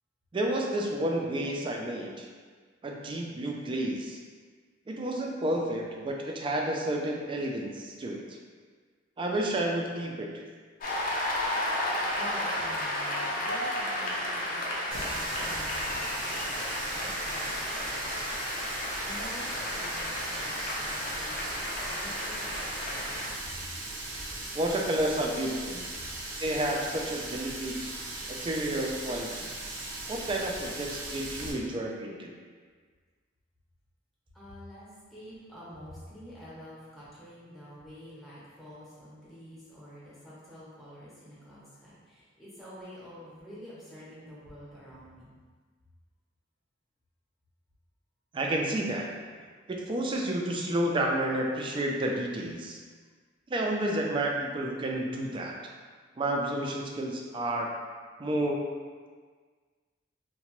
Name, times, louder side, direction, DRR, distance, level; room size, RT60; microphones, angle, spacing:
voice 1, 0.3-2.3 2.8-4.2 4.9-8.4 9.2-10.4 24.5-25.8 26.4-27.9 28.3-29.5 30.1-32.3 48.3-49.1 49.7-52.8 53.5-55.5 56.2-57.7 58.2-58.6, right 1 dB, 25° right, 0 dB, 0.3 m, -30 dB
Cheering / Applause, 10.8-23.3, left 1 dB, 45° left, 0.4 m, -33 dB
voice 2, 12.2-14.5 14.9-18.4 18.7-23.7 34.3-45.3, equal, ahead, -10 dB, 0.7 m, -48 dB
Water tap faucet, 14.9-31.5, right 2 dB, 75° right, 0.5 m, -39 dB
2.8 x 2.1 x 3.0 m, 1.5 s
head